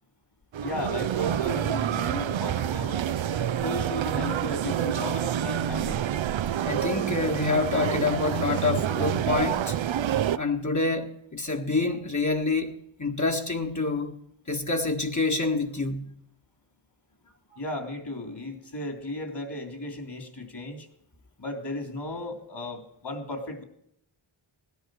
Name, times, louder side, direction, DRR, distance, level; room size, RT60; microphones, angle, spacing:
sound 1, 0.5-10.4, right 10 dB, 65° right, 0.6 m, -28 dB
voice 1, 0.6-3.0 3.6-6.0 17.6-20.9 21.4-23.6, left 2 dB, 50° left, 3.2 m, -35 dB
voice 2, 6.6-9.8 10.3-12.7 13.0-14.2 14.5-16.1, left 3 dB, 35° left, 1.6 m, -27 dB
17.0 x 10.5 x 6.3 m
wide cardioid pair, 65°, 50 cm